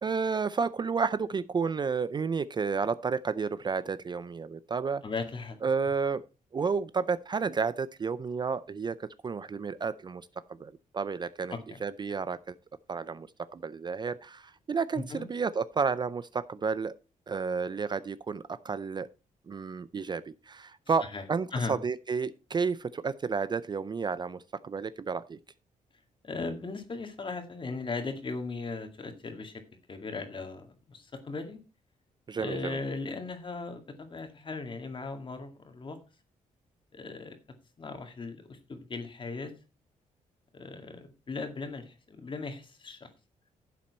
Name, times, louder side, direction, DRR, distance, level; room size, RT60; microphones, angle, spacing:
voice 1, 0.0-5.0 5.6-6.2 6.5-10.3 10.6-11.6 11.8-12.5 12.9-13.3 13.5-16.9 17.3-19.1 19.5-25.4 32.3-32.8, right 5 dB, 30° right, 16 dB, 0.4 m, -31 dB
voice 2, 5.0-5.6 11.5-11.8 15.0-15.3 21.1-21.2 21.5-21.7 26.2-29.5 29.9-31.6 32.4-36.0 36.9-37.4 37.8-39.5 40.5-43.1, left 3 dB, 35° left, 6 dB, 2.1 m, -37 dB
11.0 x 7.4 x 4.1 m, 0.29 s
cardioid pair, 105°, 14 cm